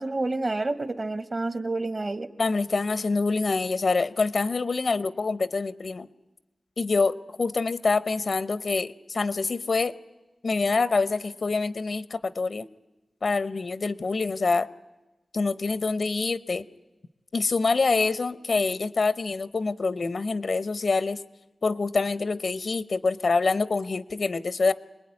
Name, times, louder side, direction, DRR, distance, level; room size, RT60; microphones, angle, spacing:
voice 1, 0.0-2.3, right 2 dB, 40° right, 13 dB, 1.2 m, -29 dB
voice 2, 2.4-6.1 6.8-9.9 10.4-12.7 13.2-14.7 15.3-16.6 17.3-21.2 21.6-24.7, left 4 dB, 65° left, 15 dB, 0.8 m, -26 dB
25.5 x 20.5 x 9.8 m, 1.1 s
wide cardioid pair, 100°, 0 cm